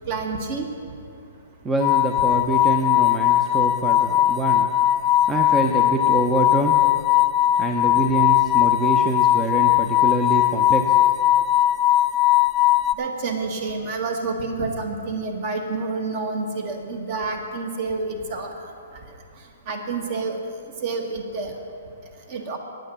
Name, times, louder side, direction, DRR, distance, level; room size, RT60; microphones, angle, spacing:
voice 1, 0.1-0.7 13.0-18.5 19.7-20.4 20.8-21.5 22.3-22.6, right 3 dB, 45° right, 3 dB, 1.7 m, -28 dB
voice 2, 1.6-4.7 5.3-6.8 7.6-11.0, right 2 dB, 15° right, 2 dB, 0.7 m, -25 dB
sound 1, 1.8-12.9, left 13 dB, 25° left, 0.4 m, -19 dB
9.1 x 9.0 x 7.3 m, 2.5 s
hypercardioid pair, 140°, 0 cm